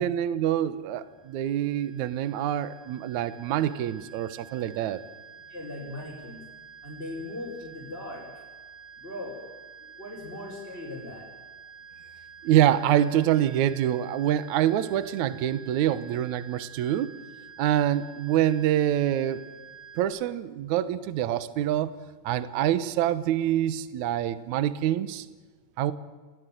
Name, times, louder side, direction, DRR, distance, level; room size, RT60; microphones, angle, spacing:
voice 1, 0.0-5.0 12.4-17.1 17.6-19.5 20.0-21.9 22.2-25.3 25.8-25.9, right 11 dB, 70° right, 14 dB, 1.8 m, -26 dB
sound 1, 0.9-20.0, right 7 dB, 20° right, 3.5 m, -49 dB
voice 2, 5.5-6.4 6.8-8.3 9.0-9.3 10.0-11.2, left 2 dB, 15° left, -5 dB, 5.0 m, -38 dB
30.0 x 17.5 x 9.3 m, 1.4 s
omnidirectional pair, 4.7 m